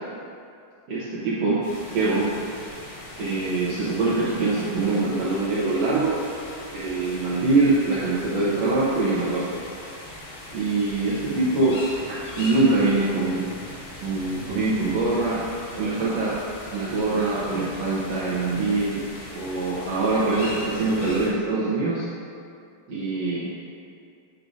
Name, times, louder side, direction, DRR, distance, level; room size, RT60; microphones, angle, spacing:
voice 1, 0.9-1.6 1.9-2.3 3.2-6.2 6.7-9.5 10.5-11.8 12.3-13.4 14.0-15.4 15.7-16.4 16.7-19.0 19.3-22.0 22.9-23.5, right 3 dB, 80° right, -9 dB, 1.5 m, -23 dB
sound 1, 1.6-21.3, left 1 dB, 60° left, 3.2 m, -40 dB
8.9 x 6.5 x 2.6 m, 2.4 s
omnidirectional pair, 4.3 m